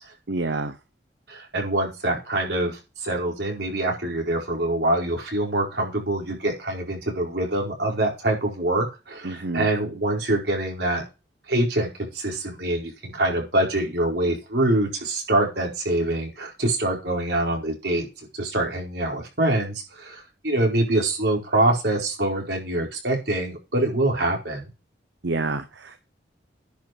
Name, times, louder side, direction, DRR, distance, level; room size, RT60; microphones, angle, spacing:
voice 1, 0.3-0.8 9.2-9.7 25.2-26.0, right 3 dB, 80° right, 10 dB, 0.9 m, -28 dB
voice 2, 1.3-11.0 11.5-18.1 18.3-24.7, right 1 dB, 65° right, 0 dB, 4.8 m, -25 dB
10.5 x 6.0 x 5.3 m, 0.28 s
head